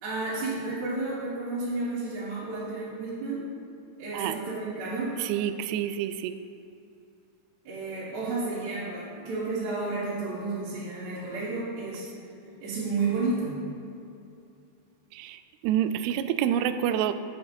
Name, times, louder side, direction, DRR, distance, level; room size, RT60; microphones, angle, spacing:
voice 1, 0.0-3.4 4.0-5.1 7.6-12.1 12.4-13.6, right 3 dB, 60° right, -12 dB, 4.3 m, -31 dB
voice 2, 5.3-6.3 15.2-15.4 15.6-17.1, right 10 dB, 90° right, 9 dB, 2.2 m, -27 dB
17.0 x 8.8 x 2.6 m, 2.6 s
omnidirectional pair, 5.0 m